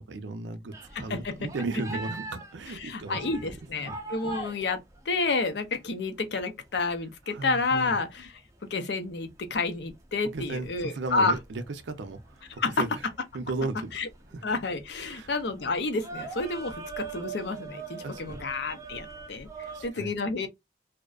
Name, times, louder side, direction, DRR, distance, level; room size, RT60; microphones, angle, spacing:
voice 1, 0.0-4.0 7.3-7.9 10.2-13.0 13.3-13.9 14.3-14.5 15.1-15.3 18.0-18.4 19.6-20.1, right 3 dB, 90° right, 0.5 m, -36 dB
sound 1, 0.7-5.9 6.4-6.5 6.7-19.9, right 3 dB, 20° right, 0.5 m, -43 dB
voice 2, 0.9-1.3 2.7-8.3 8.7-11.3 12.6-12.8 13.9-14.1 14.4-20.5, left 3 dB, 75° left, 0.5 m, -30 dB
2.5 x 2.1 x 2.3 m
head